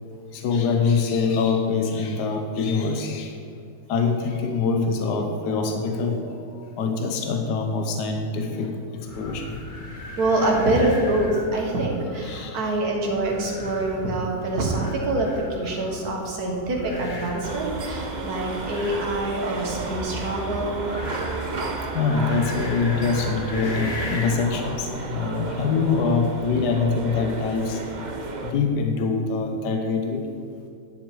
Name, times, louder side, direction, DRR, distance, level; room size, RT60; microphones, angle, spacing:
voice 1, 0.4-3.3 3.9-6.2 6.8-8.7 9.2-9.4 12.2-12.5 21.9-27.8 28.5-30.2, left 4 dB, 80° left, 4 dB, 1.4 m, -24 dB
sound 1, 9.1-24.6, left 2 dB, 35° left, 1.0 m, -38 dB
voice 2, 10.2-20.8, right 2 dB, 65° right, 0 dB, 2.1 m, -25 dB
sound 2, 17.4-28.5, right 3 dB, 45° right, 0.6 m, -32 dB
11.0 x 7.9 x 4.7 m, 2.4 s
omnidirectional pair, 1.8 m